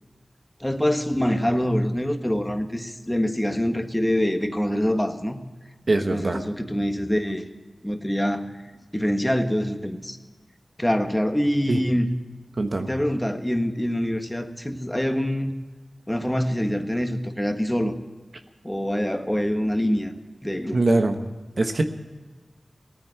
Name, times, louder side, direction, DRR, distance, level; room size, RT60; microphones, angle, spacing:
voice 1, 0.6-5.4 6.0-7.4 7.8-8.5 8.9-10.2 10.8-12.1 12.8-15.5 16.1-17.9 18.6-20.1 20.4-20.8, equal, 10° left, 7 dB, 1.6 m, -25 dB
voice 2, 5.9-6.4 11.7-11.8 12.6-12.9 20.7-21.2 21.6-21.8, right 2 dB, 65° right, 6 dB, 1.2 m, -22 dB
18.0 x 9.3 x 8.0 m, 1.3 s
wide cardioid pair, 60°, 0 cm